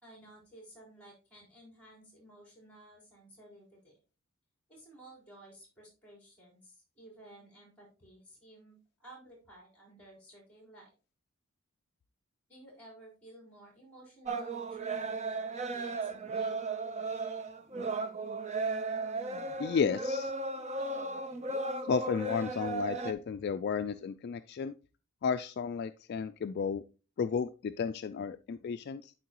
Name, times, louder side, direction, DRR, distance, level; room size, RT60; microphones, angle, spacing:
voice 1, 0.0-3.9 4.7-10.9 12.5-16.5, right 1 dB, 5° left, -1 dB, 4.3 m, -55 dB
sound 1, 14.3-23.1, right 3 dB, 30° right, 0.6 m, -35 dB
voice 2, 19.6-20.3 21.9-24.7 25.2-26.8 27.2-29.1, left 6 dB, 50° left, 10 dB, 0.3 m, -33 dB
11.5 x 4.6 x 2.9 m, 0.33 s
head